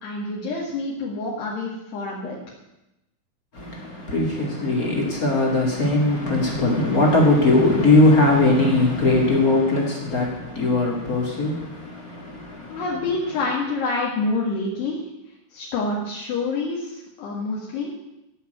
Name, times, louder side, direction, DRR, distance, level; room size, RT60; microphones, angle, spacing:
voice 1, 0.0-2.4 12.7-15.0 15.5-17.9, left 3 dB, 65° left, -4 dB, 3.7 m, -27 dB
voice 2, 3.5-12.8, left 2 dB, 45° left, -1 dB, 1.1 m, -20 dB
15.5 x 6.0 x 9.3 m, 0.91 s
omnidirectional pair, 5.6 m